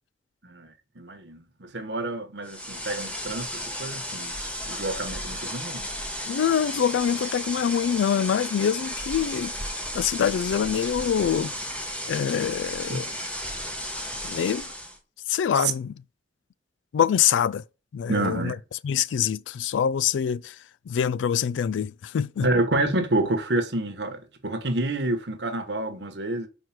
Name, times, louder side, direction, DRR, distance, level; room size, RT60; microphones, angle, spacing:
voice 1, 0.4-4.4 4.7-5.9 12.9-13.0 15.5-15.7 18.1-18.6 22.4-26.5, right 2 dB, 65° right, 1.2 m, -28 dB
sound 1, 2.4-15.0, equal, 5° left, 1.0 m, -34 dB
voice 2, 6.3-9.5 9.9-11.5 12.1-13.1 14.2-14.6 15.3-15.9 16.9-17.6 17.9-18.6 18.8-20.5 20.9-22.5, left 8 dB, 85° left, 0.3 m, -25 dB
4.7 x 4.6 x 5.9 m
head